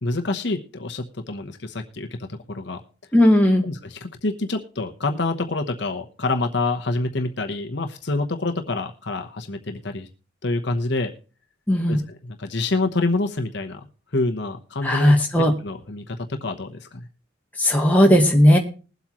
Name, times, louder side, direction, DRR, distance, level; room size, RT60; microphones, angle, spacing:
voice 1, 0.0-2.8 3.6-10.1 10.4-11.1 11.9-15.1 15.6-17.1, left 2 dB, 60° left, 4 dB, 1.0 m, -27 dB
voice 2, 3.1-3.7 11.7-12.0 14.8-15.5 17.6-18.6, left 1 dB, 10° left, 0 dB, 1.7 m, -16 dB
20.5 x 8.0 x 3.1 m, 0.36 s
head